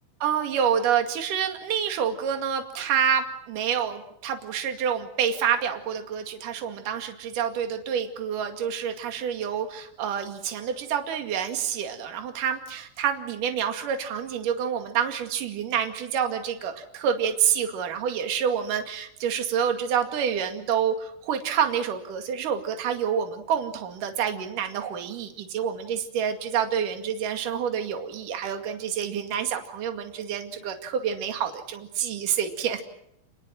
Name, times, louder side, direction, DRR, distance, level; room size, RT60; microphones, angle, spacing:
voice 1, 0.2-32.8, right 8 dB, 50° right, 5 dB, 3.2 m, -28 dB
28.0 x 21.0 x 7.7 m, 0.77 s
omnidirectional pair, 5.7 m